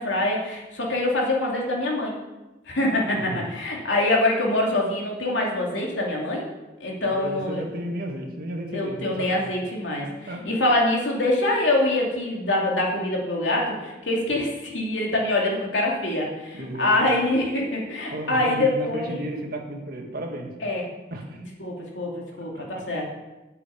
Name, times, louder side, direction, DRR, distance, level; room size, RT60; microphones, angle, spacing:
voice 1, 0.0-2.1 2.7-6.5 6.8-7.6 8.7-19.2 20.6-20.9 21.4-23.1, left 1 dB, 75° left, -2 dB, 2.8 m, -25 dB
voice 2, 7.0-9.4 10.3-10.4 16.5-17.0 18.1-20.5 21.1-21.4 22.5-22.8, right 1 dB, 50° right, 2 dB, 1.7 m, -33 dB
8.5 x 6.9 x 8.5 m, 1.1 s
head